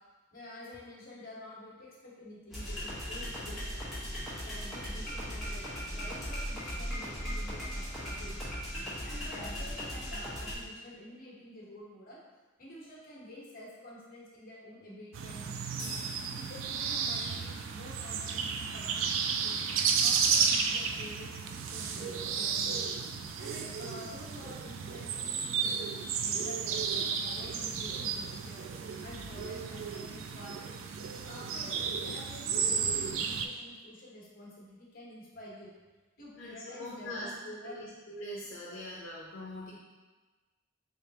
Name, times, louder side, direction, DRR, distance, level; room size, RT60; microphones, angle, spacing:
voice 1, 0.3-3.7 4.4-8.4 9.0-12.2 12.6-16.0 16.5-19.6 20.0-22.8 23.4-28.6 29.0-30.5 31.2-35.7 36.2-37.8, left 1 dB, 50° left, -6 dB, 1.1 m, -49 dB
sound 1, 2.5-10.5, equal, ahead, 1.2 m, -38 dB
sound 2, 15.1-33.5, right 6 dB, 85° right, 0.3 m, -33 dB
sound 3, 15.7-22.3, left 1 dB, 25° left, 0.9 m, -54 dB
voice 2, 36.4-39.7, left 1 dB, 80° left, -5 dB, 0.6 m, -42 dB
3.9 x 3.4 x 2.8 m, 1.3 s
head